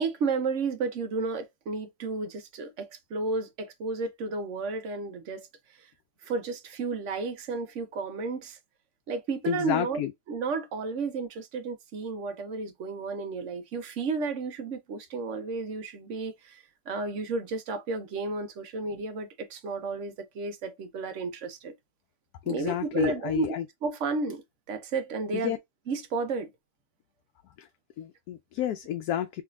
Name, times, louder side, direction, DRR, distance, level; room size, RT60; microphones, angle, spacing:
voice 1, 0.0-5.5 5.8-5.9 6.2-8.6 9.1-10.0 10.3-21.7 22.5-24.4 24.7-25.6 25.9-26.5, right 4 dB, 60° right, 1.1 m, -32 dB
voice 2, 9.5-10.1 22.5-23.6 25.3-25.6 27.6-27.7 28.0-29.4, left 11 dB, 90° left, 1.1 m, -30 dB
3.6 x 3.2 x 2.3 m
omnidirectional pair, 1.6 m